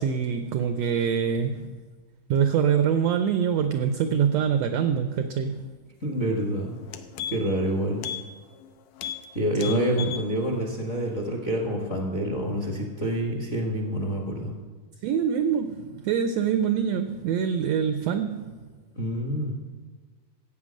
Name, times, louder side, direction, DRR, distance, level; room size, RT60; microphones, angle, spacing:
voice 1, 0.0-1.7 2.3-5.6 9.6-10.2 15.0-18.5, right 7 dB, 80° right, 9 dB, 1.5 m, -25 dB
voice 2, 6.0-6.7 7.3-8.0 9.3-14.5 18.9-19.5, equal, 35° left, 0 dB, 1.2 m, -27 dB
sound 1, 6.3-6.4 6.8-7.6 8.0-8.2 8.5-8.7 9.0-9.3 9.5-10.3 10.7-10.8, left 10 dB, 85° left, 2.2 m, -35 dB
14.5 x 8.5 x 6.3 m, 1.4 s
omnidirectional pair, 3.7 m